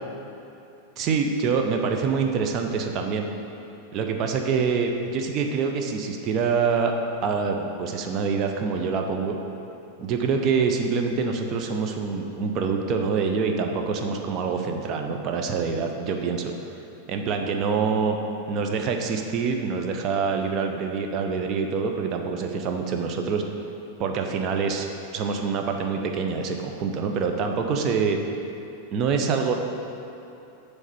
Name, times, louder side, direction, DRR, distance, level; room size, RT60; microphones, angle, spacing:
voice 1, 1.0-3.3 3.9-6.9 7.2-9.4 10.0-16.5 17.1-18.2 18.5-23.4 24.0-24.9 25.1-28.2 28.9-29.5, right 5 dB, 35° right, 3 dB, 0.6 m, -25 dB
7.2 x 3.3 x 5.8 m, 2.8 s
figure-of-eight pair, 90°, 0 cm